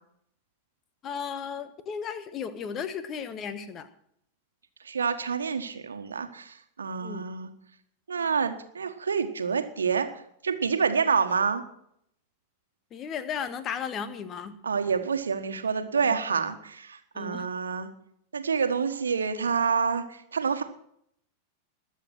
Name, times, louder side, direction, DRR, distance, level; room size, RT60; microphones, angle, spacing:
voice 1, 1.0-3.9 7.0-7.3 12.9-14.5 16.0-16.2 17.1-17.5, left 7 dB, 30° left, 13 dB, 1.3 m, -35 dB
voice 2, 4.8-7.5 8.1-10.1 10.4-11.6 14.6-17.9 18.3-20.0 20.3-20.6, right 6 dB, 70° right, 8 dB, 1.5 m, -27 dB
21.0 x 7.4 x 6.2 m, 0.70 s
figure-of-eight pair, 90°, 0 cm